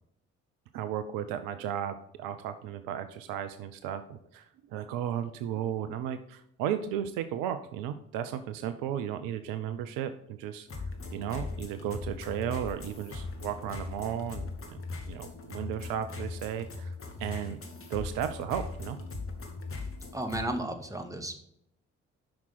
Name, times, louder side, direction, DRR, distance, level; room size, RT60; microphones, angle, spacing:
voice 1, 0.7-10.7 11.1-14.5 15.1-16.9 17.2-17.6 17.9-19.0, right 9 dB, 65° right, 10 dB, 0.6 m, -34 dB
sound 1, 10.7-20.4, left 3 dB, 35° left, 1.6 m, -40 dB
voice 2, 20.1-21.4, right 1 dB, 10° right, 6 dB, 1.5 m, -34 dB
7.4 x 6.0 x 5.8 m, 0.75 s
figure-of-eight pair, 40°, 38 cm